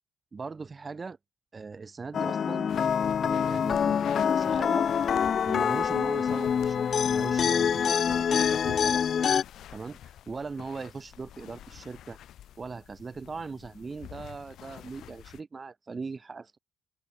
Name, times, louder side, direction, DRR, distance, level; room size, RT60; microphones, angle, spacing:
voice 1, 0.3-1.2 1.5-2.7 3.2-4.9 5.4-9.1 9.7-12.2 12.6-16.6, right 4 dB, 30° right, 5.9 m, -40 dB
sound 1, 2.1-9.4, left 7 dB, 50° left, 1.3 m, -25 dB
sound 2, 2.7-15.4, left 11 dB, 75° left, 7.1 m, -47 dB
open air
cardioid pair, 90°, 0 cm